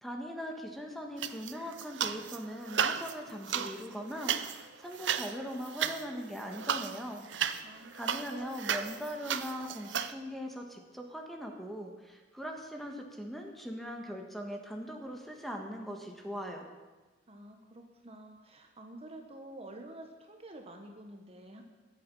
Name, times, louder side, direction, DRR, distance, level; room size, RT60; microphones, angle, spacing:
voice 1, 0.0-7.2 7.9-16.7, equal, ahead, 2 dB, 1.6 m, -40 dB
sound 1, 1.2-2.4 2.7-10.1, right 8 dB, 80° right, 0.7 m, -34 dB
voice 2, 7.6-8.0 17.3-21.6, right 1 dB, 35° right, 3 dB, 1.3 m, -49 dB
21.0 x 7.9 x 5.5 m, 1.2 s
head